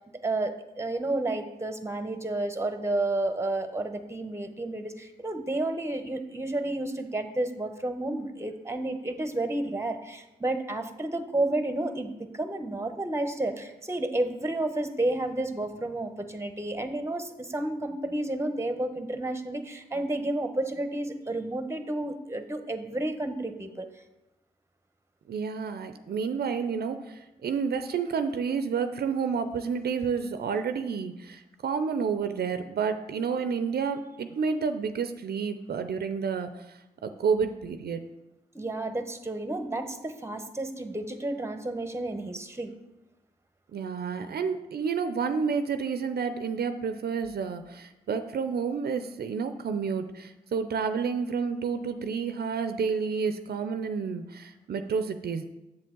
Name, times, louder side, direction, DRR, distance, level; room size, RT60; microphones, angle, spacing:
voice 1, 0.2-23.9 38.5-42.7, right 2 dB, 15° right, 8 dB, 1.0 m, -31 dB
voice 2, 25.3-38.0 43.7-55.5, right 6 dB, 70° right, 9 dB, 0.5 m, -30 dB
7.6 x 7.2 x 3.8 m, 0.97 s
supercardioid pair, 45°, 17 cm